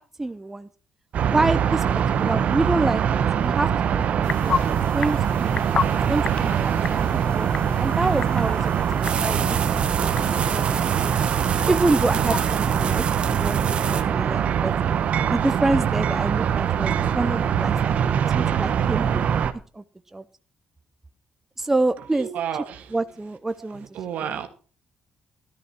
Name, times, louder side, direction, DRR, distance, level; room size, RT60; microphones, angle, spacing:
voice 1, 0.2-0.7 1.3-1.8 2.2-8.7 9.2-11.1 11.7-14.7 15.3-19.2 19.7-19.8 20.1-20.2 21.6-22.3 22.9-23.9 24.2-24.3, right 2 dB, 15° right, 11 dB, 0.7 m, -27 dB
sound 1, 1.1-19.5, right 8 dB, 60° right, 1.1 m, -23 dB
sound 2, 4.2-13.0, left 6 dB, 40° left, 0.5 m, -34 dB
sound 3, 9.0-14.0, right 6 dB, 45° right, 1.6 m, -31 dB
voice 2, 22.2-22.8 24.0-24.5, right 9 dB, 75° right, 7 dB, 1.9 m, -30 dB
13.5 x 12.5 x 4.4 m, 0.37 s
cardioid pair, 120°, 3 cm